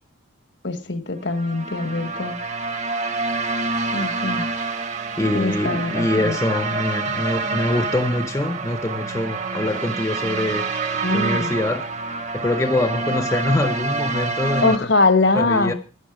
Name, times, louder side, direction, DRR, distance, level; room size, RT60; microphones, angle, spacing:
voice 1, 0.6-2.4 3.9-4.5 5.3-6.3 11.0-11.5 14.6-15.7, left 3 dB, 60° left, 1.3 m, -22 dB
sound 1, 1.3-14.8, right 3 dB, 35° right, 1.1 m, -27 dB
voice 2, 5.2-10.7 11.1-11.9 12.3-14.8 15.3-15.7, left 2 dB, 15° left, 0.6 m, -24 dB
11.5 x 10.0 x 4.8 m
head